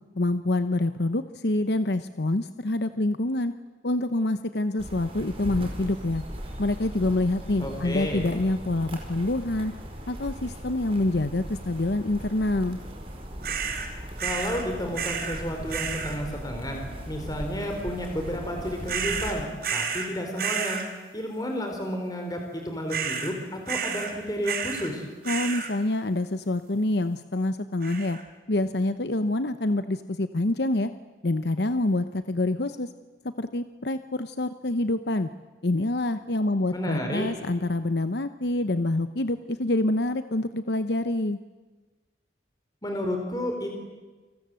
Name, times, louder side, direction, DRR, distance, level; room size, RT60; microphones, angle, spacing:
voice 1, 0.2-3.5 3.8-6.2 6.6-9.7 10.1-12.8 25.3-28.2 28.5-30.9 31.2-32.9 33.4-35.3 35.6-41.4, left 2 dB, 60° left, 11 dB, 0.9 m, -26 dB
sound 1, 4.8-19.4, equal, 30° right, 4.9 m, -38 dB
voice 2, 7.6-8.3 14.2-19.5 19.7-20.8 21.1-25.1 36.7-37.3 42.8-43.8, equal, 20° left, 3 dB, 4.1 m, -31 dB
sound 2, 13.4-13.9 14.2-14.6 14.9-15.4 15.7-16.2 18.9-20.1 20.4-20.9 22.9-23.3 23.7-24.1 24.4-24.9 25.2-25.7 27.8-28.2, right 6 dB, 50° right, 3.8 m, -31 dB
29.5 x 25.5 x 7.7 m, 1.3 s
head